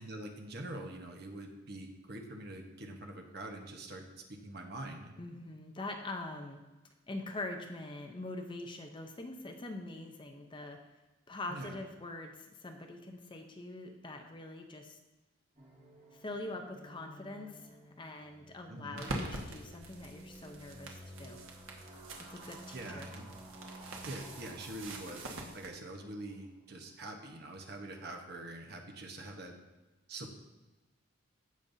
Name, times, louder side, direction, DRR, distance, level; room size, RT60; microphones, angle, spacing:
voice 1, 0.0-4.0 4.3-5.1 11.5-11.8 18.7-19.1 22.7-23.3 24.1-29.5 30.1-30.3, right 1 dB, 50° right, 3 dB, 1.1 m, -44 dB
voice 2, 5.2-6.6 7.1-10.8 11.3-15.0 16.1-21.4 22.3-23.1, left 2 dB, 25° left, 4 dB, 0.6 m, -43 dB
sound 1, 15.6-26.4, equal, 35° right, 1.8 m, -53 dB
sound 2, 19.0-25.7, right 2 dB, 85° right, 1.3 m, -45 dB
15.5 x 5.3 x 2.7 m, 1.1 s
head